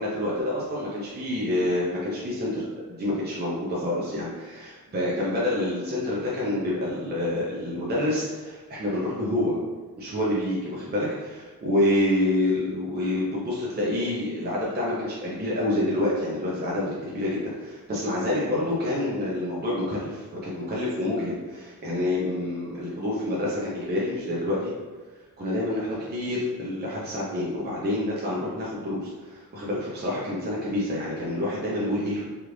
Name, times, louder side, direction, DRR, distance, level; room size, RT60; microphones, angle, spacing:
voice 1, 0.0-9.6 10.0-24.7 25.4-32.2, left 1 dB, 30° right, -6 dB, 0.6 m, -27 dB
3.4 x 2.4 x 3.0 m, 1.4 s
wide cardioid pair, 170°, 36 cm